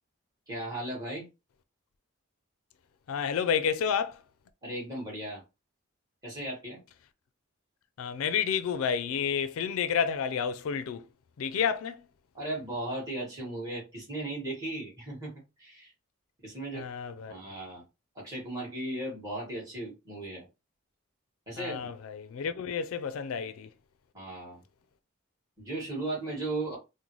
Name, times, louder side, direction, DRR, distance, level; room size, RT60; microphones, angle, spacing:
voice 1, 0.5-1.3 4.6-5.4 6.2-6.8 12.3-15.3 15.6-15.9 16.4-16.9 17.3-17.8 18.2-20.5 21.5-21.9 24.1-24.6 25.6-26.8, right 1 dB, 15° right, 1.7 m, -36 dB
voice 2, 3.1-4.2 8.0-11.0 11.4-12.0 16.7-17.3 21.6-23.7, left 7 dB, 75° left, 0.4 m, -30 dB
3.8 x 2.0 x 3.0 m
head